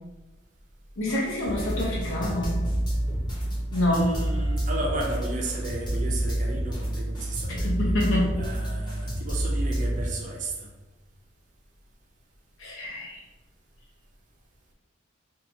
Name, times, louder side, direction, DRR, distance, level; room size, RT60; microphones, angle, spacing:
voice 1, 1.0-2.6 3.7-4.1 7.5-8.4 12.6-13.2, left 1 dB, 85° left, -4 dB, 0.9 m, -27 dB
sound 1, 1.4-10.1, right 1 dB, 20° left, 0.9 m, -28 dB
voice 2, 3.9-7.8 8.4-10.7, right 2 dB, 40° right, 0 dB, 0.5 m, -34 dB
2.7 x 2.3 x 2.9 m, 1.1 s
head